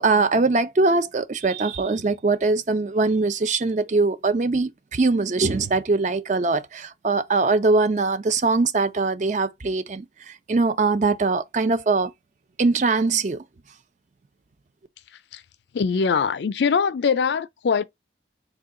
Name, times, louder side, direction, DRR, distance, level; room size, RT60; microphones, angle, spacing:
voice 1, 0.0-12.1 12.6-13.4, right 3 dB, 40° right, 0.4 m, -22 dB
voice 2, 15.7-17.8, left 6 dB, 80° left, 0.4 m, -22 dB
3.7 x 2.2 x 3.6 m
head